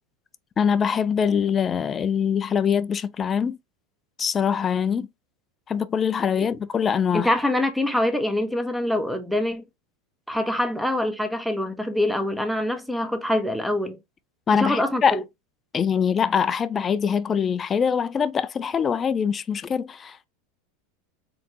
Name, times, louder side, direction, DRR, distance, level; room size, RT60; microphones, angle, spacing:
voice 1, 0.6-3.6 4.2-5.1 5.7-7.3 14.5-15.2 15.7-20.3, left 7 dB, 25° left, 0.5 m, -23 dB
voice 2, 7.1-9.6 10.3-14.0 14.5-15.2, left 1 dB, ahead, 0.9 m, -25 dB
4.2 x 3.8 x 2.9 m
supercardioid pair, 125°, 0 cm